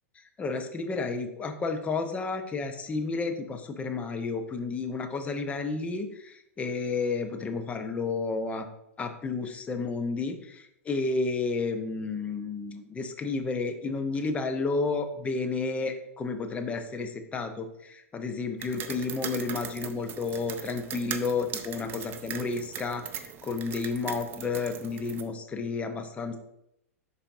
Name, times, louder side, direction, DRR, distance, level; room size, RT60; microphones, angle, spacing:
voice 1, 0.4-8.6 9.0-26.4, left 4 dB, 15° left, 6 dB, 0.7 m, -31 dB
sound 1, 18.6-25.2, right 8 dB, 25° right, 0.5 m, -39 dB
11.0 x 4.1 x 2.7 m, 0.81 s
figure-of-eight pair, 100°, 8 cm